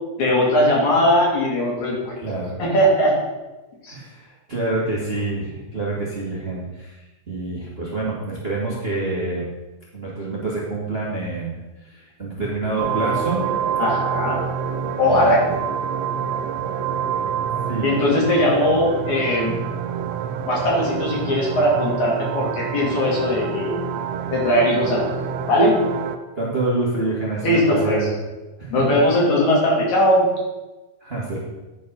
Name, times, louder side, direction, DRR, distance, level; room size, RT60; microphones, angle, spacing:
voice 1, 0.2-2.1 2.6-3.2 3.8-3.9 13.8-14.4 15.0-15.4 17.8-19.6 20.5-23.8 24.3-25.2 25.5-25.8 27.4-28.0 28.7-30.3, left 1 dB, 70° left, -4 dB, 3.8 m, -19 dB
voice 2, 2.2-2.5 3.9-9.5 9.9-11.6 11.8-13.5 15.0-15.5 17.7-17.8 26.3-28.1 28.6-28.8 31.0-31.4, right 2 dB, 30° right, -5 dB, 1.2 m, -27 dB
sound 1, 12.8-26.2, right 8 dB, 80° right, 1.5 m, -27 dB
9.5 x 5.4 x 5.3 m, 1.1 s
omnidirectional pair, 3.4 m